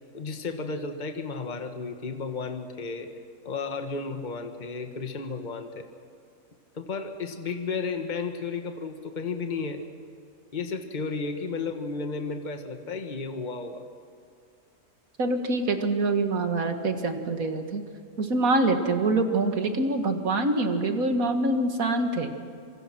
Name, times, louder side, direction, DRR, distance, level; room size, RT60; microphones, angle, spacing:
voice 1, 0.1-3.1 3.4-5.9 6.7-9.8 10.5-13.8, left 4 dB, 30° left, 5 dB, 1.6 m, -33 dB
voice 2, 15.2-17.8 18.2-22.4, right 2 dB, 65° right, 6 dB, 2.3 m, -25 dB
26.5 x 24.5 x 6.1 m, 2.4 s
omnidirectional pair, 1.6 m